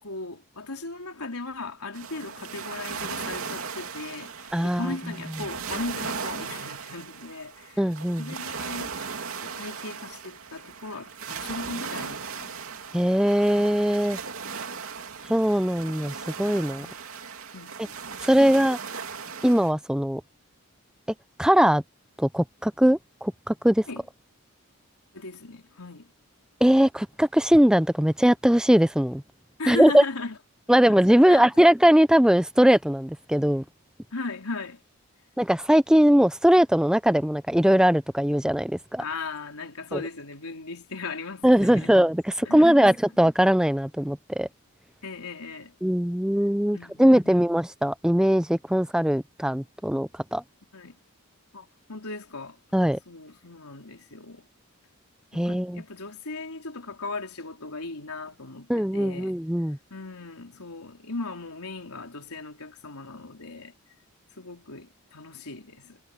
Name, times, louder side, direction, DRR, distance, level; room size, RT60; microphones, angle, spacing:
voice 1, 0.0-7.9 8.2-9.0 9.3-12.6 16.8-17.2 17.5-18.1 18.4-18.5 23.9-24.0 25.1-26.1 29.6-30.4 30.7-30.8 31.3-31.7 34.1-34.8 39.0-42.0 42.4-43.0 45.0-45.7 46.7-47.5 50.7-51.0 51.5-52.6 53.1-54.5 55.3-59.3 59.9-63.7 64.4-66.0, left 3 dB, 85° left, 3.9 m, -37 dB
sound 1, 1.9-19.7, right 5 dB, 70° right, 2.8 m, -37 dB
voice 2, 4.5-4.9 7.8-8.3 12.9-14.2 15.3-16.9 18.2-18.8 19.4-20.2 21.4-21.8 22.2-23.8 26.6-29.2 29.7-30.0 30.7-33.6 35.4-39.0 39.9-40.0 41.4-44.5 45.8-50.4 52.7-53.0 55.3-55.8 58.7-59.8, equal, 5° right, 0.5 m, -20 dB
head